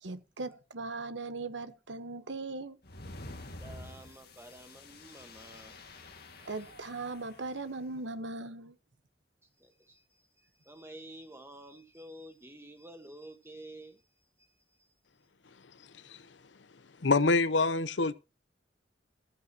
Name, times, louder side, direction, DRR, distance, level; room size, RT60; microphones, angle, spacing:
voice 1, 0.0-2.8 6.4-8.7, right 3 dB, 85° right, 1.2 m, -39 dB
sound 1, 2.8-7.7, left 2 dB, 60° left, 2.0 m, -49 dB
voice 2, 3.4-6.7 9.6-14.1 14.4-14.9, right 1 dB, 15° right, 1.4 m, -51 dB
voice 3, 17.0-18.1, left 3 dB, 80° left, 0.8 m, -25 dB
14.5 x 14.0 x 3.0 m
head